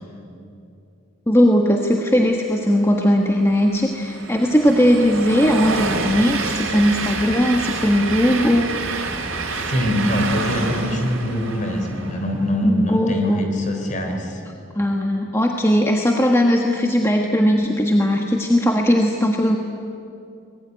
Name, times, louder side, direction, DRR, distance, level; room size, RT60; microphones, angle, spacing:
voice 1, 1.3-8.9 12.6-13.4 14.7-19.6, equal, 15° left, 2 dB, 1.3 m, -18 dB
Train, 3.0-12.4, right 3 dB, 90° right, 3.9 m, -27 dB
voice 2, 9.5-14.4, equal, 40° left, 4 dB, 3.9 m, -23 dB
24.5 x 20.0 x 9.6 m, 2.6 s
head